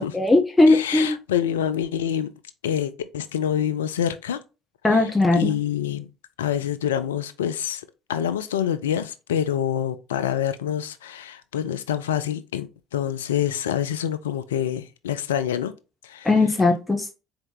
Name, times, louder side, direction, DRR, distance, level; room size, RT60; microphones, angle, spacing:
voice 1, 0.0-1.1 4.8-5.5 16.2-17.1, left 2 dB, 15° left, 0.9 m, -19 dB
voice 2, 0.7-2.3 2.6-4.4 4.9-6.1 6.4-7.8 8.1-15.7 16.0-16.3, left 9 dB, 80° left, 0.4 m, -26 dB
4.3 x 2.9 x 3.7 m
figure-of-eight pair, 60°, 0 cm